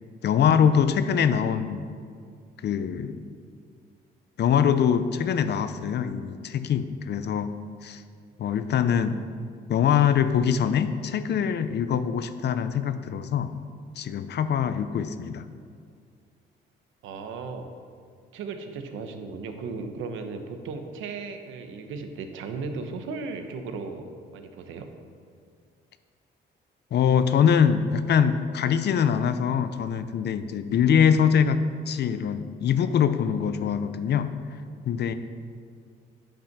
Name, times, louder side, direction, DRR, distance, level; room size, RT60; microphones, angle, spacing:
voice 1, 0.2-1.9 2.6-3.2 4.4-7.5 7.8-8.0 8.4-9.2 9.7-13.5 14.0-15.4 26.9-31.6 31.9-34.3 34.8-35.1, left 7 dB, 60° left, 11 dB, 0.6 m, -23 dB
voice 2, 17.0-17.7 18.3-24.9, right 4 dB, 90° right, 6 dB, 0.9 m, -36 dB
8.9 x 5.4 x 5.9 m, 2.2 s
cardioid pair, 90°, 20 cm